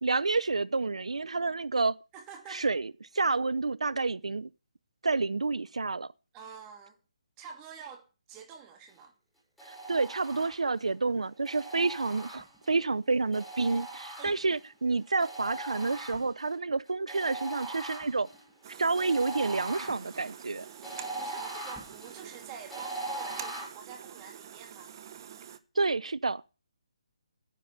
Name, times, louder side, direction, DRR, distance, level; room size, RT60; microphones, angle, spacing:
voice 1, 0.0-2.0 2.5-4.5 5.0-6.1 9.7-18.3 18.8-20.7 25.8-26.4, right 3 dB, 90° right, 0.5 m, -29 dB
voice 2, 2.1-2.7 6.3-7.0 7.4-9.1 14.2-14.3 21.0-24.9, right 7 dB, 20° right, 2.4 m, -47 dB
sound 1, 9.6-10.8 11.4-12.8 13.3-14.7 15.2-16.5 17.1-23.6, right 2 dB, ahead, 6.0 m, -41 dB
sound 2, 18.6-25.6, right 9 dB, 40° right, 1.1 m, -47 dB
9.9 x 8.7 x 6.6 m
hypercardioid pair, 155°, 3 cm